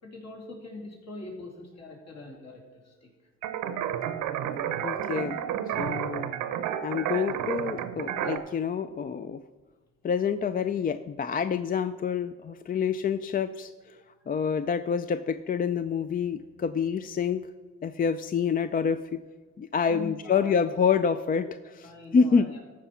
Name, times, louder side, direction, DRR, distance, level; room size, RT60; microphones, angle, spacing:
voice 1, 0.0-3.1 19.9-20.6 21.8-22.6, left 2 dB, 55° left, -1 dB, 3.0 m, -42 dB
sound 1, 3.4-8.4, right 10 dB, 90° right, 0.8 m, -31 dB
voice 2, 4.8-5.4 5.8-6.3 6.8-9.4 10.0-13.7 14.3-17.4 17.8-19.2 19.6-22.5, left 6 dB, 30° left, 12 dB, 0.4 m, -27 dB
14.0 x 4.9 x 5.6 m, 1.3 s
cardioid pair, 90°, 30 cm